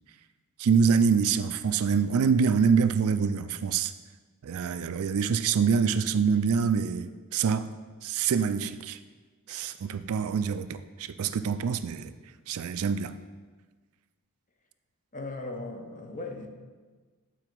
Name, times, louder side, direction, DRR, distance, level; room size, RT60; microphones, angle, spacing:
voice 1, 0.6-3.9 4.4-7.7 8.0-9.0 9.5-12.1 12.5-13.1, right 6 dB, 70° right, 12 dB, 0.4 m, -25 dB
voice 2, 15.1-16.5, left 2 dB, 35° left, 4 dB, 0.8 m, -37 dB
8.7 x 4.8 x 4.5 m, 1.4 s
head